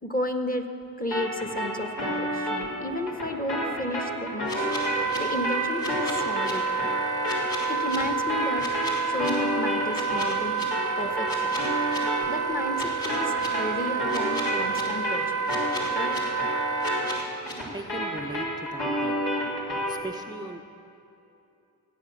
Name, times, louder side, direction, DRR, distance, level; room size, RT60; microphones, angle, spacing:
voice 1, 0.0-0.7 1.0-4.7 5.2-6.7 7.7-8.7 9.0-10.6 11.0-11.6 12.3-15.3 15.9-16.2, left 1 dB, 20° left, 6 dB, 1.4 m, -32 dB
sound 1, 1.1-10.4 10.7-20.0, equal, 70° left, 3.9 m, -31 dB
sound 2, 4.4-5.2 5.8-6.5 7.2-8.0 8.6-9.3 9.9-10.6 11.3-12.0 12.7-13.5 14.1-14.8 15.5-16.2 16.8-17.5, left 2 dB, 55° left, 3.6 m, -36 dB
Wind instrument woodwind instrument, 4.5-17.2, right 5 dB, 45° right, 0.8 m, -29 dB
voice 2, 17.7-19.1 19.9-20.6, right 2 dB, 10° right, 3 dB, 0.8 m, -38 dB
16.0 x 9.3 x 7.4 m, 2.8 s
cardioid pair, 45°, 41 cm